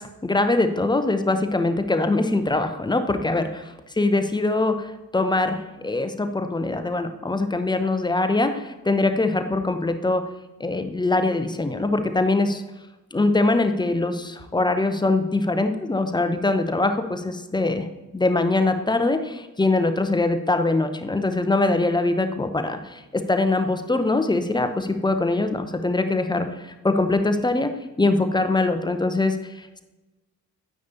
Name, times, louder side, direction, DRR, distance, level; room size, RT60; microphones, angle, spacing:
voice 1, 0.0-10.2 10.6-12.6 13.1-17.9 18.1-23.0 23.3-29.8, left 2 dB, 10° left, 8 dB, 0.7 m, -23 dB
9.4 x 8.4 x 2.8 m, 1.1 s
figure-of-eight pair, 40°, 47 cm